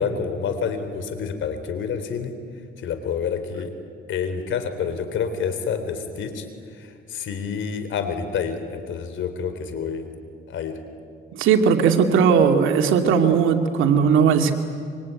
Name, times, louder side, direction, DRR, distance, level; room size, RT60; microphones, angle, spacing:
voice 1, 0.0-2.3 2.8-3.7 4.1-6.5 6.8-10.1 10.5-10.8, left 6 dB, 75° left, 9 dB, 3.6 m, -28 dB
voice 2, 11.3-14.5, right 6 dB, 90° right, 5 dB, 2.3 m, -18 dB
25.5 x 23.5 x 9.6 m, 2.3 s
cardioid pair, 90°, 20 cm